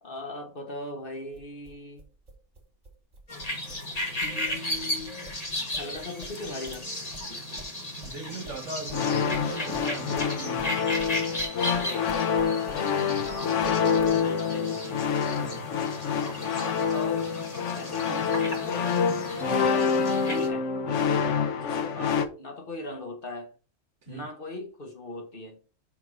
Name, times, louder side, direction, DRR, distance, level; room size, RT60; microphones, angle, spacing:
voice 1, 0.0-2.0 4.2-5.2 5.8-6.9 11.8-12.4 13.2-15.0 16.5-17.3 17.7-19.0 19.6-21.1 21.5-23.5 24.1-25.6, left 2 dB, 45° left, 1.5 m, -39 dB
sound 1, 1.3-6.9 7.1-12.9 13.2-14.2, right 2 dB, 30° right, 2.6 m, -47 dB
sound 2, 3.3-20.5, left 1 dB, 30° left, 1.9 m, -35 dB
voice 2, 8.0-11.0 13.0-13.3 15.3-15.7 19.3-19.7 21.3-21.4 24.0-24.3, right 3 dB, 65° right, 1.8 m, -40 dB
sound 3, 8.9-22.3, left 6 dB, 65° left, 1.2 m, -27 dB
5.7 x 4.8 x 5.4 m
omnidirectional pair, 1.3 m